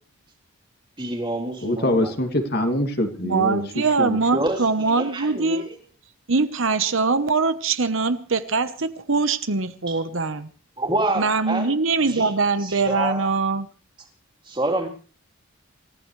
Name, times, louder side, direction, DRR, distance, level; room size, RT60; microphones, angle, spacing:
voice 1, 1.0-2.1 4.3-4.6 4.9-5.7 9.9-10.0 10.8-11.7 12.1-12.3 12.6-13.3 14.5-14.9, right 2 dB, 20° right, 3.4 m, -27 dB
voice 2, 1.6-3.6 4.0-4.2, left 1 dB, 45° left, 2.4 m, -24 dB
voice 3, 3.2-5.7 6.3-10.5 11.2-13.7, right 4 dB, 60° right, 1.0 m, -22 dB
28.0 x 15.0 x 3.2 m
head